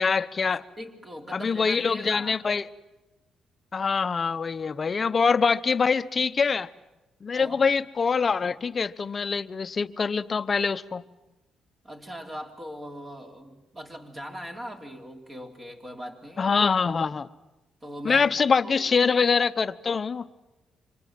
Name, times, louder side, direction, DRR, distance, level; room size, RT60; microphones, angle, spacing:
voice 1, 0.0-0.7 1.3-2.7 3.7-6.7 7.2-11.0 16.4-17.3 18.0-20.3, left 5 dB, 40° left, 0.8 m, -24 dB
voice 2, 0.8-2.4 7.3-7.7 11.8-16.6 17.8-18.3 18.6-18.7, equal, 25° right, 3.4 m, -40 dB
28.5 x 25.5 x 7.6 m
cardioid pair, 90°, 0 cm